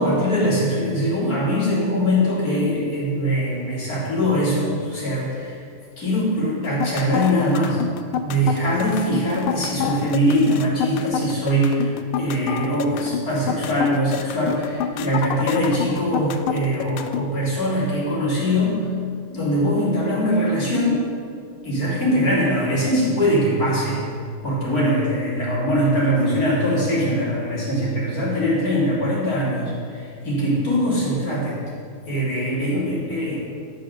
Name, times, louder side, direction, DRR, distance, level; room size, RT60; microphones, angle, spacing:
voice 1, 0.0-5.6 6.0-7.8 8.2-18.9 19.3-21.0 21.6-24.1 24.4-31.6 32.1-33.4, equal, 40° left, -7 dB, 4.0 m, -22 dB
sound 1, 6.6-17.2, left 8 dB, 75° left, 1.5 m, -27 dB
12.5 x 6.7 x 6.9 m, 2.2 s
omnidirectional pair, 2.4 m